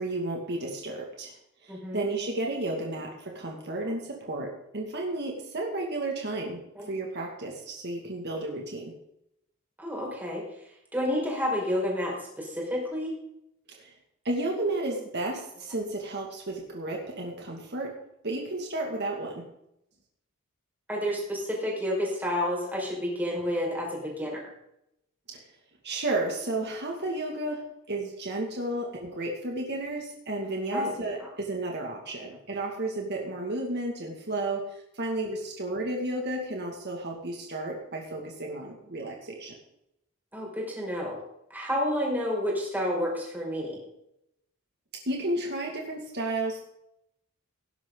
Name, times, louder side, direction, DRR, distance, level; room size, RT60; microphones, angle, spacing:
voice 1, 0.0-1.3 1.6-8.9 13.8-13.9 14.2-18.0 18.2-19.5 25.3-25.4 25.8-39.5 45.1-46.6, right 2 dB, 55° right, 0 dB, 2.3 m, -32 dB
voice 2, 1.7-2.1 6.8-6.9 9.8-10.4 10.9-13.1 20.9-24.4 30.7-30.9 31.2-31.3 40.3-41.2 41.5-43.8, equal, 10° right, -2 dB, 5.2 m, -30 dB
18.5 x 11.0 x 4.0 m, 0.80 s
head